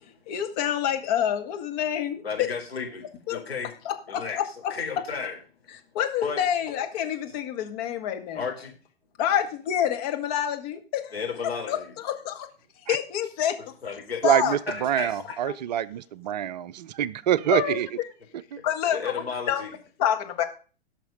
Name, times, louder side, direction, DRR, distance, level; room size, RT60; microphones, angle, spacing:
voice 1, 0.3-2.2 3.3-3.4 3.9-4.4 5.9-8.4 9.2-10.8 11.7-11.8 12.0-12.5 12.9-13.6 13.9-14.0 14.2-14.6 17.5-17.8 18.6-19.6 20.0-20.4, left 9 dB, 40° left, 5 dB, 1.8 m, -27 dB
voice 2, 2.2-3.7 4.1-4.4 4.7-5.4 6.2-6.4 8.3-8.7 11.1-11.9 13.8-14.2 14.7-15.4 18.9-19.7, left 5 dB, 75° left, 1 dB, 3.9 m, -33 dB
voice 3, 14.2-17.9, right 11 dB, 45° right, 17 dB, 0.6 m, -25 dB
16.5 x 6.0 x 5.3 m, 0.38 s
figure-of-eight pair, 105°, 31 cm